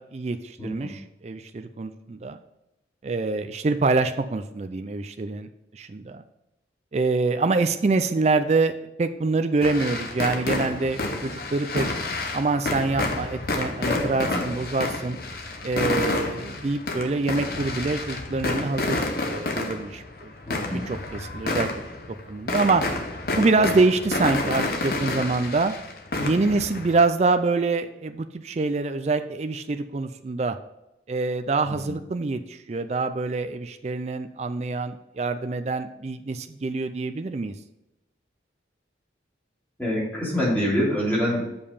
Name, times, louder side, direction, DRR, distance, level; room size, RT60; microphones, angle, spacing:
voice 1, 0.0-2.4 3.0-6.2 6.9-8.7 9.0-11.9 12.3-15.2 15.6-20.3 20.7-21.7 22.3-22.8 23.4-25.7 26.2-30.6 31.1-37.5, right 3 dB, 35° right, 8 dB, 0.4 m, -25 dB
voice 2, 0.6-0.9 13.9-14.4 20.5-20.8 31.6-31.7 39.8-41.5, equal, 10° left, -7 dB, 3.1 m, -26 dB
sound 1, 9.6-27.1, left 2 dB, 55° left, 0.9 m, -29 dB
6.8 x 5.2 x 5.5 m, 0.92 s
head